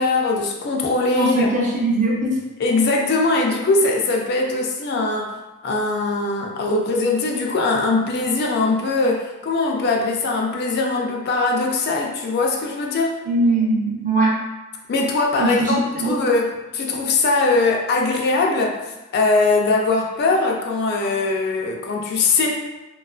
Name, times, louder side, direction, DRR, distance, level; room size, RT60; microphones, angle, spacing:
voice 1, 0.0-1.5 2.6-5.4 5.6-13.2 14.9-18.8 19.1-22.7, left 3 dB, 45° left, 0 dB, 0.3 m, -21 dB
voice 2, 1.2-2.4 13.3-14.3 15.4-16.1, right 2 dB, 35° right, -4 dB, 0.5 m, -20 dB
2.8 x 2.3 x 2.3 m, 1.1 s
head